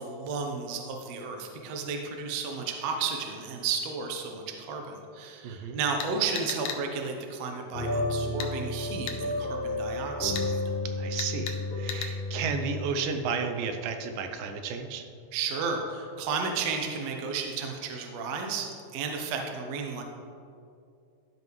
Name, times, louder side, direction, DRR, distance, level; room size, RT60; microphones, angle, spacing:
voice 1, 0.0-10.6 15.3-20.0, right 5 dB, 70° right, 3 dB, 1.7 m, -33 dB
voice 2, 5.4-5.8 10.9-15.1, right 5 dB, 85° right, 6 dB, 2.4 m, -33 dB
sound 1, 6.0-6.8 8.4-8.5 9.1-9.2 10.3-10.5 11.2-11.6 11.9-12.1, left 7 dB, 80° left, 1.7 m, -35 dB
sound 2, 7.7-12.9, left 2 dB, 60° left, 1.8 m, -32 dB
13.0 x 5.4 x 3.1 m, 2.4 s
omnidirectional pair, 3.9 m